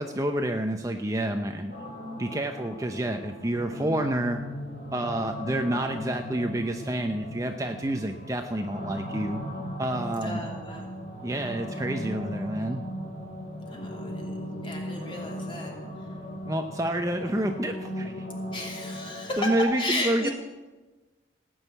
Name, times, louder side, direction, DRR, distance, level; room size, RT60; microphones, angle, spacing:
voice 1, 0.0-1.7 2.2-4.4 4.9-9.4 9.8-10.4 11.2-12.8 16.5-18.2 19.4-20.3, right 1 dB, 20° right, 5 dB, 0.6 m, -29 dB
sound 1, 1.7-19.6, equal, 50° left, 5.9 m, -37 dB
voice 2, 10.2-10.9 13.7-14.3 14.6-15.7 18.5-20.3, left 1 dB, 30° left, 0 dB, 2.9 m, -33 dB
18.0 x 6.4 x 9.1 m, 1.2 s
head